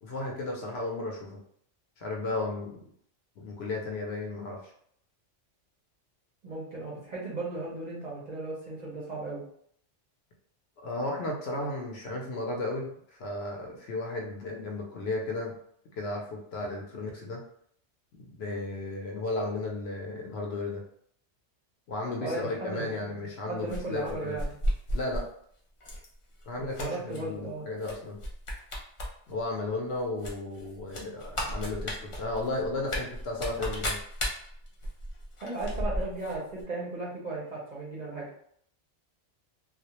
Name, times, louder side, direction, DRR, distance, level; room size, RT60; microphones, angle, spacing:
voice 1, 0.0-1.4 2.0-2.8 3.4-4.7 10.8-12.9 13.2-15.5 16.0-17.4 18.1-20.8 21.9-24.4 24.9-25.2 26.5-28.2 29.3-34.0, left 2 dB, 65° left, 0 dB, 0.8 m, -34 dB
voice 2, 6.4-9.4 22.2-24.5 26.6-27.7 35.4-38.3, right 2 dB, 50° right, -5 dB, 0.6 m, -36 dB
sound 1, 23.7-25.3 25.8-26.1 26.4-27.2 27.8-27.9 28.2-29.1 29.4-29.5 30.2-36.3 36.6-36.7, equal, 45° left, 0.4 m, -33 dB
2.3 x 2.0 x 2.8 m, 0.66 s
omnidirectional pair, 1.2 m